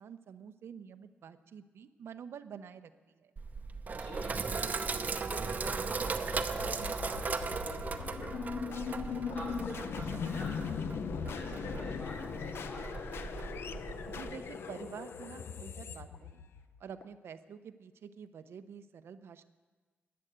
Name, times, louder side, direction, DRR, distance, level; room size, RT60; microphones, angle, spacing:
voice 1, 0.0-3.3 14.1-16.4 16.8-19.4, right 7 dB, 80° right, 10 dB, 0.7 m, -48 dB
Sink (filling or washing), 3.4-14.4, right 4 dB, 40° right, 0.7 m, -38 dB
voice 2, 3.9-11.0 11.3-13.3, left 1 dB, 50° left, -1 dB, 4.2 m, -48 dB
sound 1, 6.3-17.1, left 6 dB, 75° left, 0.6 m, -39 dB
11.0 x 10.5 x 8.0 m, 1.4 s
wide cardioid pair, 130°, 4 cm